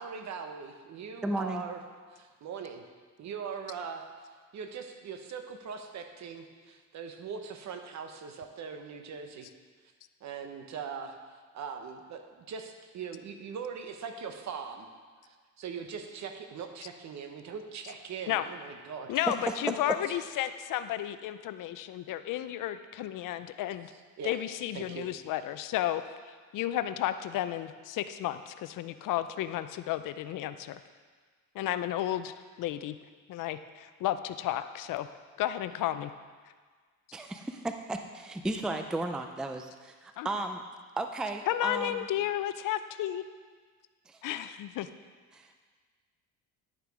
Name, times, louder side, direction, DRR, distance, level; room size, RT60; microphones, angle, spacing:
voice 1, 0.0-1.8 2.1-2.8 3.2-4.1 4.5-9.5 10.2-11.2 11.5-14.9 15.2-19.1 24.2-24.4 24.7-25.1, right 6 dB, 55° right, 6 dB, 1.1 m, -41 dB
voice 2, 1.2-1.6 37.1-40.6 41.0-42.1 44.1-44.2 45.3-45.5, right 2 dB, ahead, 6 dB, 0.4 m, -34 dB
voice 3, 19.1-23.9 24.2-26.0 26.5-30.8 31.5-33.0 33.3-35.1 35.4-36.1 40.2-40.3 41.5-43.2 44.2-44.9, left 12 dB, 65° left, 11 dB, 0.6 m, -32 dB
10.5 x 6.8 x 4.8 m, 1.5 s
cardioid pair, 120°, 34 cm